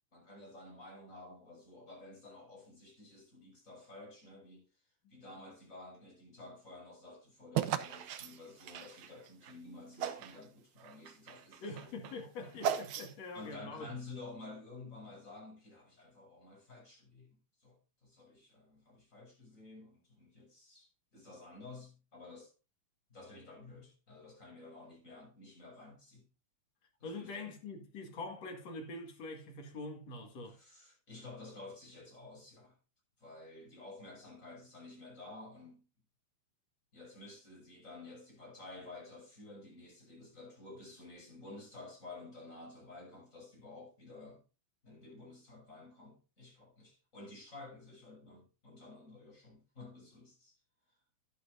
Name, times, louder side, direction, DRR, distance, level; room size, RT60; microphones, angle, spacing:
voice 1, 0.1-4.7 5.1-11.9 13.3-22.5 23.1-26.3 27.0-27.6 30.4-32.8 33.2-35.9 36.9-44.4 44.8-50.6, left 2 dB, 25° left, 6.5 m, -52 dB
sound 1, 7.5-9.6 10.0-10.4 10.8-13.4, right 9 dB, 80° right, 1.2 m, -37 dB
voice 2, 11.6-13.9 27.0-30.6, left 2 dB, 60° left, 3.2 m, -44 dB
11.5 x 11.0 x 2.6 m
omnidirectional pair, 3.5 m